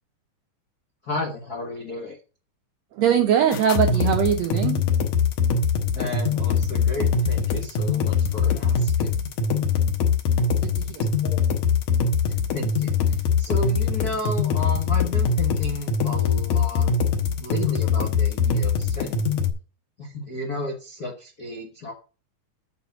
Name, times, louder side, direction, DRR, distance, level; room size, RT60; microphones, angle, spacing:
voice 1, 1.0-2.2 5.9-9.2 11.2-11.4 12.2-16.9 17.4-19.2 20.0-21.9, left 2 dB, 80° left, 0.8 m, -33 dB
voice 2, 2.9-4.9 10.6-11.1, right 9 dB, 80° right, 1.5 m, -22 dB
sound 1, 3.5-19.5, left 5 dB, 65° left, 2.2 m, -22 dB
8.1 x 5.0 x 7.0 m
omnidirectional pair, 4.0 m